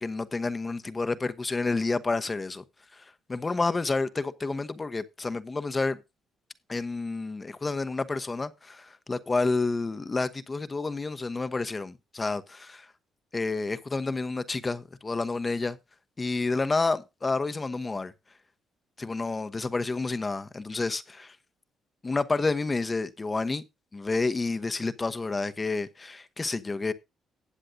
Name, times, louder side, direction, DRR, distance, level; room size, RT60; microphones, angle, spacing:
voice 1, 0.0-2.6 2.9-3.0 3.3-6.0 6.7-12.9 13.3-15.8 16.2-18.1 19.0-21.4 22.0-23.6 23.9-26.9, left 3 dB, 25° left, 1.0 m, -29 dB
18.5 x 7.5 x 2.6 m
cardioid pair, 90°, 0 cm